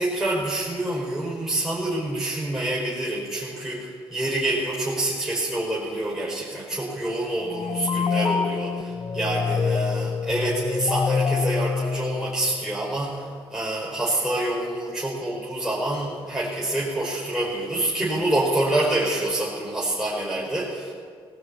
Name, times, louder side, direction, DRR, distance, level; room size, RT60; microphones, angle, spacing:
voice 1, 0.0-20.9, right 1 dB, 5° right, -7 dB, 5.7 m, -27 dB
sound 1, 7.4-12.9, left 5 dB, 40° left, 0.7 m, -26 dB
19.5 x 17.5 x 8.8 m, 2.1 s
cardioid pair, 95°, 10 cm